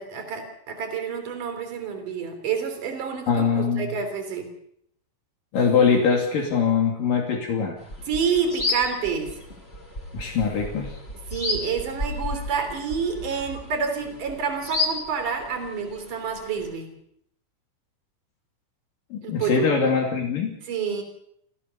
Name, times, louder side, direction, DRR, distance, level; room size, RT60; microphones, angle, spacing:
voice 1, 0.0-4.5 8.0-9.4 11.3-16.9 19.2-19.7 20.6-21.0, right 6 dB, 60° right, 6 dB, 4.8 m, -28 dB
voice 2, 3.3-3.9 5.5-7.8 10.1-11.0 19.1-20.5, left 6 dB, 70° left, 1 dB, 4.5 m, -22 dB
sound 1, 7.8-16.7, left 2 dB, 20° left, 3.0 m, -33 dB
28.5 x 15.0 x 7.0 m, 0.74 s
omnidirectional pair, 4.0 m